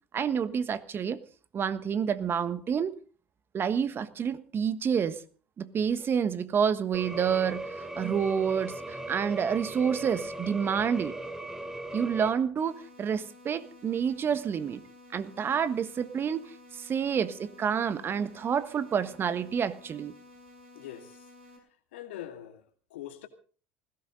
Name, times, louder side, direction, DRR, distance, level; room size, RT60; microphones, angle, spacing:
voice 1, 0.1-1.2 1.5-2.9 3.5-5.2 5.6-11.2 11.9-14.8 15.1-16.4 16.7-20.1, right 7 dB, 35° right, 1.4 m, -28 dB
sound 1, 6.9-12.3, right 1 dB, 10° right, 3.6 m, -38 dB
sound 2, 12.6-21.6, left 2 dB, 80° right, 5.9 m, -53 dB
voice 2, 20.7-21.2 21.9-22.6 22.9-23.3, left 11 dB, 70° left, 2.4 m, -42 dB
20.0 x 17.0 x 3.9 m
figure-of-eight pair, 70°, 7 cm